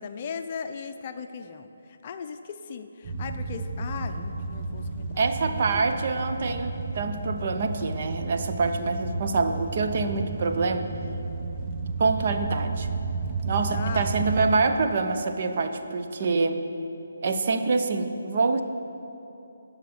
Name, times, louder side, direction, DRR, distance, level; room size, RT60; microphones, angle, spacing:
voice 1, 0.0-5.7 13.7-14.1, left 6 dB, 35° left, 8 dB, 0.5 m, -38 dB
sound 1, 3.0-14.5, right 3 dB, 25° right, 1.0 m, -32 dB
voice 2, 5.2-10.9 12.0-12.9 13.4-16.6 17.2-18.6, right 4 dB, 45° right, 6 dB, 0.7 m, -26 dB
12.0 x 5.7 x 7.0 m, 2.9 s
figure-of-eight pair, 150°, 0 cm